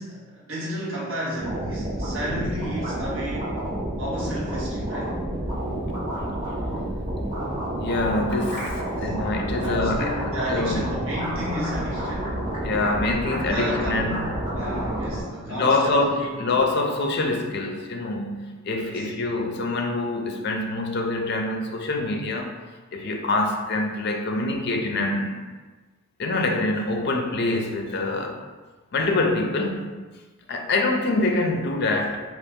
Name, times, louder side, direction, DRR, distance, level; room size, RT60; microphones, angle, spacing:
voice 1, 0.0-3.6 4.0-5.2 8.8-9.1 9.5-12.4 13.2-14.2 14.5-16.4 18.8-19.1, equal, 60° right, -6 dB, 1.0 m, -32 dB
sound 1, 1.4-15.2, right 1 dB, 35° right, 1.2 m, -29 dB
voice 2, 7.8-10.8 12.6-14.2 15.2-22.5 22.9-25.4 26.2-28.4 28.9-29.9 30.5-32.2, left 2 dB, 50° left, 3 dB, 0.5 m, -25 dB
3.8 x 2.5 x 3.6 m, 1.3 s
head